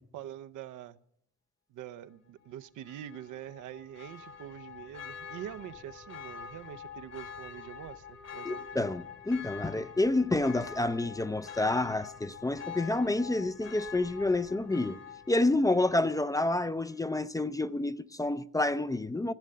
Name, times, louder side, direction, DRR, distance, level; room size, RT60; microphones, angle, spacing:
voice 1, 0.1-1.0 1.7-8.9, right 11 dB, 85° right, 0.7 m, -45 dB
Church bell, 2.8-16.5 16.9-17.0, left 7 dB, 55° left, 2.1 m, -46 dB
voice 2, 8.5-15.0 15.3-19.3, left 2 dB, 10° left, 0.4 m, -29 dB
15.0 x 6.5 x 9.4 m
cardioid pair, 90°, 30 cm